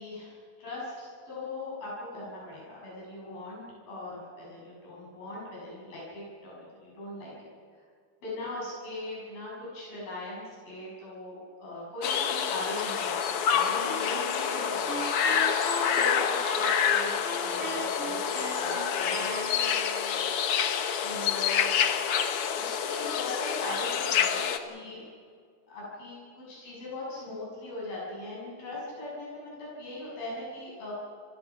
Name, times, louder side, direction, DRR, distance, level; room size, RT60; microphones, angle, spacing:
voice 1, 0.0-7.5 8.2-15.4 16.0-17.1 17.4-19.8 21.0-21.7 22.6-25.0 25.7-30.9, left 2 dB, 80° left, -5 dB, 9.0 m, -40 dB
sound 1, 12.0-24.6, left 8 dB, 60° left, 1.5 m, -27 dB
sound 2, 13.7-20.3, right 2 dB, 40° right, 4.5 m, -38 dB
27.5 x 19.5 x 6.0 m, 2.1 s
omnidirectional pair, 4.1 m